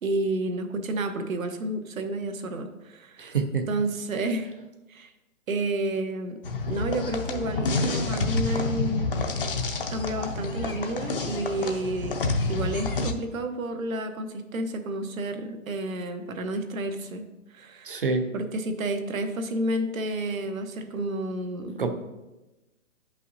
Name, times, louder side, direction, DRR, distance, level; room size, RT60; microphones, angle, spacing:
voice 1, 0.0-3.2 3.7-4.5 4.9-5.1 5.5-6.4 6.7-9.1 9.9-17.2 17.5-18.0 18.3-21.9, right 1 dB, 75° right, 7 dB, 1.1 m, -30 dB
voice 2, 3.2-3.7 17.8-18.2 21.8-21.9, right 4 dB, 40° right, 7 dB, 0.6 m, -26 dB
sound 1, 6.4-13.1, left 3 dB, 40° left, 0.6 m, -28 dB
10.0 x 5.5 x 2.7 m, 1.1 s
hypercardioid pair, 175°, 42 cm